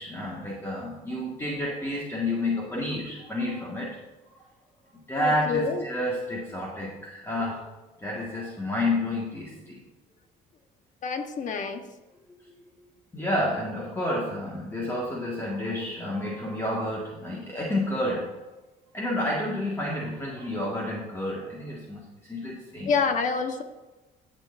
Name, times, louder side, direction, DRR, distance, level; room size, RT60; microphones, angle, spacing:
voice 1, 0.0-4.0 5.1-7.8 8.0-9.8 13.1-18.6 18.9-22.0 22.3-22.9, left 1 dB, 15° left, -4 dB, 1.8 m, -30 dB
voice 2, 5.2-5.8 11.0-11.8 22.8-23.6, left 5 dB, 50° left, 6 dB, 1.3 m, -27 dB
15.5 x 6.6 x 2.7 m, 1.1 s
cardioid pair, 110°, 17 cm